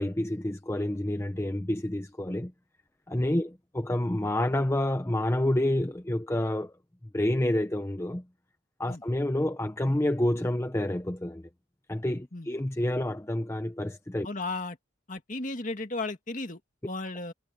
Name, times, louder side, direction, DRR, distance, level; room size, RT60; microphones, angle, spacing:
voice 1, 0.0-2.5 3.1-6.7 7.1-8.2 8.8-11.5 11.9-14.3, left 1 dB, 15° left, 0.7 m, -28 dB
voice 2, 14.2-14.8 15.1-17.3, left 2 dB, 40° left, 2.1 m, -35 dB
head